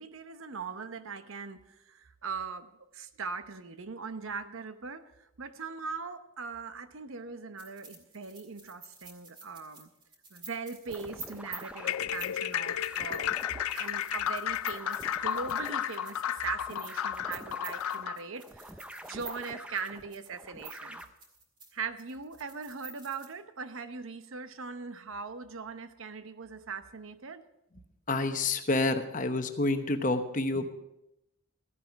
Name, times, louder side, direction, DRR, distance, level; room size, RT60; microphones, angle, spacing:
voice 1, 0.0-5.1 5.4-9.9 10.3-13.5 13.7-18.7 19.1-21.0 21.7-27.4, right 5 dB, 75° right, 10 dB, 0.8 m, -40 dB
sound 1, 7.6-21.7 22.0-23.3, right 3 dB, 20° right, 2.0 m, -49 dB
sound 2, 10.9-21.0, right 1 dB, 5° right, 0.5 m, -47 dB
sound 3, 11.8-18.2, left 10 dB, 90° left, 0.4 m, -33 dB
voice 2, 28.1-30.7, left 2 dB, 40° left, 8 dB, 0.9 m, -28 dB
14.0 x 10.5 x 5.2 m, 0.88 s
head